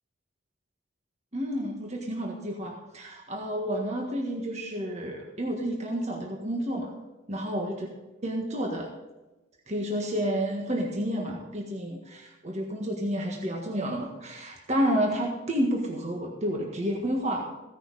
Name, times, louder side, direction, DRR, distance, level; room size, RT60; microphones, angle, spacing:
voice 1, 1.3-6.9 7.3-7.9 8.2-8.9 9.7-17.5, equal, 35° right, 0 dB, 1.7 m, -30 dB
16.0 x 10.5 x 4.2 m, 1.1 s
head